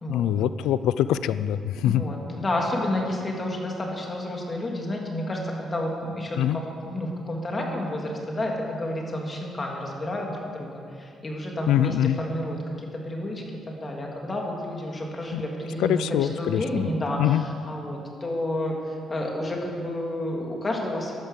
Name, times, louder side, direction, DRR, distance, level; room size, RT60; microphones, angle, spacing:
voice 1, 0.1-2.0 6.4-6.6 11.7-12.2 15.3-15.4 15.8-16.8 17.2-17.4, left 11 dB, 90° left, 15 dB, 0.5 m, -23 dB
voice 2, 1.8-21.2, left 1 dB, 30° left, 0 dB, 3.2 m, -30 dB
14.0 x 11.5 x 7.7 m, 2.4 s
cardioid pair, 90°, 0 cm